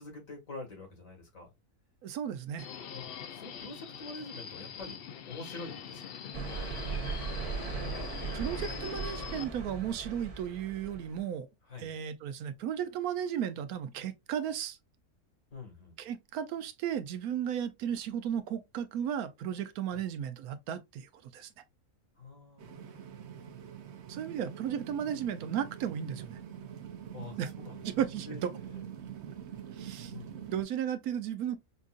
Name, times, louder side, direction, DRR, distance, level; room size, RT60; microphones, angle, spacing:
voice 1, 0.0-1.5 2.9-5.0 5.2-6.1 11.7-11.9 15.5-15.9 19.9-20.0 22.2-23.5 27.1-27.8 28.3-28.4 28.7-28.8 30.1-30.3, left 3 dB, 65° left, 2.1 m, -46 dB
voice 2, 2.0-2.7 8.3-11.5 11.8-14.8 16.0-21.5 24.1-26.4 27.4-27.5 27.8-28.5 29.7-30.1 30.5-31.6, right 9 dB, 75° right, 1.0 m, -35 dB
Subway metro underground, 2.6-9.4, left 8 dB, 80° left, 0.5 m, -43 dB
sound 1, 6.3-11.2, right 5 dB, 30° right, 0.7 m, -38 dB
sound 2, 22.6-30.6, right 9 dB, 60° right, 0.8 m, -45 dB
5.2 x 2.6 x 2.3 m
omnidirectional pair, 1.6 m